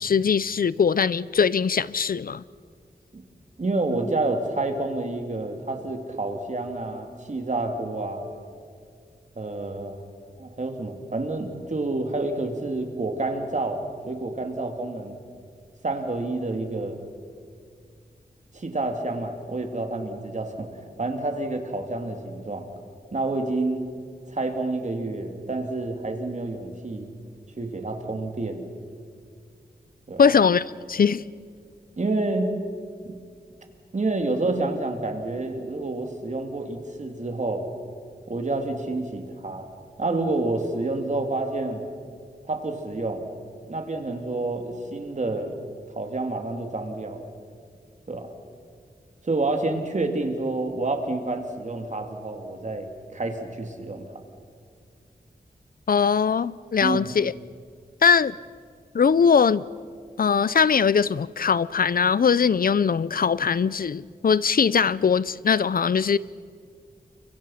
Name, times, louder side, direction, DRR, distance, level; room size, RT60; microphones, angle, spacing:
voice 1, 0.0-2.4 30.2-31.3 55.9-57.3 58.0-58.4 58.9-59.6 60.2-66.2, left 6 dB, 60° left, 0.6 m, -21 dB
voice 2, 3.6-8.3 9.4-10.0 10.4-15.2 15.8-17.1 18.5-22.7 23.1-23.9 24.3-27.1 27.6-28.7 30.1-30.2 32.0-32.6 33.0-33.2 33.9-37.7 38.3-39.7 40.0-41.8 42.5-43.3 43.7-45.5 45.9-47.2 48.1-48.3 49.2-54.1 56.8-57.0, right 2 dB, 45° right, 2.9 m, -28 dB
29.5 x 24.5 x 5.8 m
wide cardioid pair, 90°, 17 cm